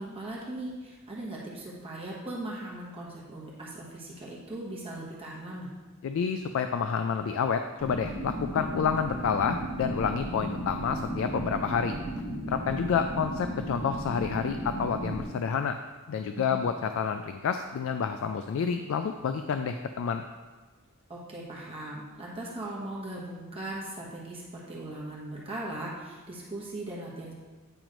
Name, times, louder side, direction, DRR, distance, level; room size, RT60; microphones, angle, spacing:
voice 1, 0.0-5.7 16.3-16.7 21.1-27.3, right 1 dB, 25° right, -5 dB, 1.1 m, -39 dB
voice 2, 6.0-12.0 12.5-15.8 16.1-20.2, left 6 dB, 65° left, 7 dB, 0.3 m, -29 dB
sound 1, 7.8-15.2, right 1 dB, 20° left, 1.4 m, -35 dB
8.9 x 3.0 x 5.0 m, 1.3 s
head